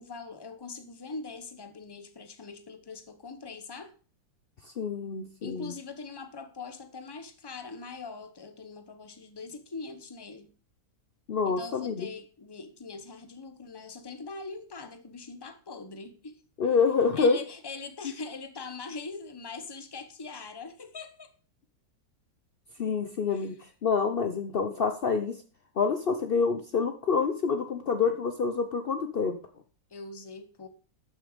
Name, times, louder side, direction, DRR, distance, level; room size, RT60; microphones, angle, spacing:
voice 1, 0.0-3.9 5.4-10.5 11.5-16.4 17.1-21.3 23.3-23.5 29.9-30.7, left 4 dB, 20° left, 0.6 m, -42 dB
voice 2, 4.6-5.7 11.3-12.1 16.6-17.4 22.8-25.4 25.8-29.4, left 5 dB, 75° left, 0.5 m, -27 dB
12.5 x 6.6 x 5.1 m
omnidirectional pair, 2.0 m